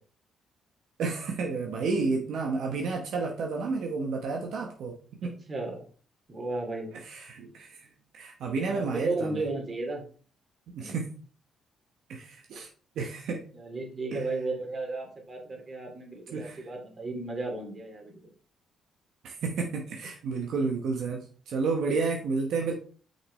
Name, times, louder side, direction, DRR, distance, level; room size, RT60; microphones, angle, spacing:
voice 1, 1.0-5.0 5.2-5.3 7.1-7.8 8.1-9.3 10.7-11.1 12.1-12.7 13.0-13.4 14.1-14.2 16.3-16.6 19.2-22.7, right 4 dB, 75° right, 1 dB, 1.1 m, -31 dB
voice 2, 5.2-5.8 6.3-7.0 8.6-10.0 10.8-11.0 13.5-18.3, right 2 dB, 35° right, 1 dB, 2.4 m, -34 dB
6.0 x 5.8 x 3.2 m, 0.40 s
cardioid pair, 90°, 0 cm